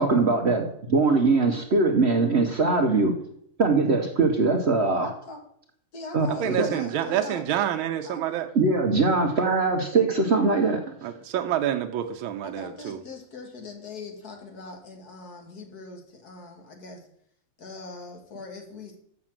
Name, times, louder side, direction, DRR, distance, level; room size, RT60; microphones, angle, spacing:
voice 1, 0.0-3.1 3.6-5.1 6.1-6.7 8.5-10.8, right 3 dB, 55° right, 0.7 m, -22 dB
voice 2, 5.0-5.4 5.9-7.4 8.0-8.2 12.4-17.0 17.6-19.0, left 3 dB, 50° left, 1.9 m, -41 dB
voice 3, 6.3-8.5 11.0-13.0, right 10 dB, 80° right, 1.5 m, -28 dB
6.7 x 6.2 x 7.4 m
omnidirectional pair, 2.3 m